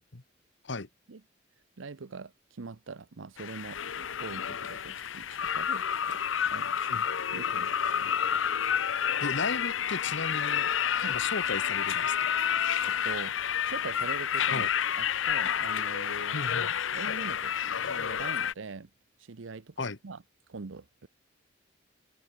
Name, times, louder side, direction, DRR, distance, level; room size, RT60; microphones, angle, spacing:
voice 1, 1.8-6.2 6.5-7.0 7.3-8.1 11.0-11.2 12.5-13.3 13.7-14.7 14.9-16.4 16.9-18.9 19.2-20.2 20.5-21.1, right 4 dB, 85° right, 0.7 m, -43 dB
sound 1, 3.4-18.5, left 8 dB, 85° left, 0.7 m, -30 dB
voice 2, 9.2-10.7 11.1-12.2 14.5-14.7 16.3-16.7 19.8-20.0, left 3 dB, 70° left, 1.5 m, -35 dB
head